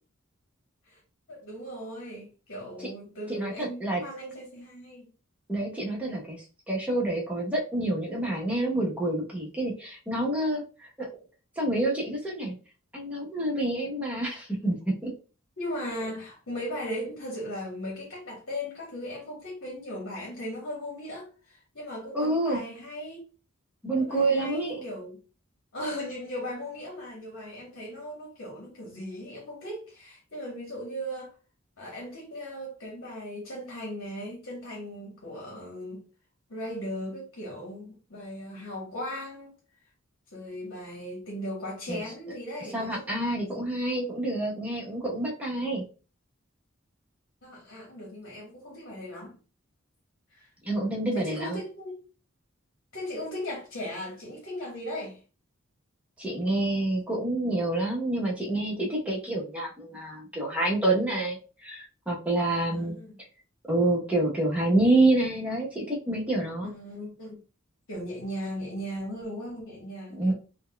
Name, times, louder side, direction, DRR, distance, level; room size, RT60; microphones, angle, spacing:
voice 1, 1.3-5.1 15.6-23.2 24.0-25.2 25.7-31.3 31.8-36.0 36.5-39.6 40.3-43.2 47.4-49.4 50.3-50.5 51.1-52.0 52.9-55.2 62.7-63.2 66.6-67.4 67.9-70.3, equal, 65° left, 1.2 m, -37 dB
voice 2, 3.3-4.0 5.5-6.4 6.7-10.6 11.0-11.1 11.6-12.5 12.9-15.1 22.1-22.6 23.8-24.8 41.9-42.0 42.7-45.8 50.6-51.6 56.2-63.0 63.7-66.7 70.1-70.3, right 2 dB, 5° right, 0.9 m, -27 dB
4.1 x 2.3 x 2.2 m
head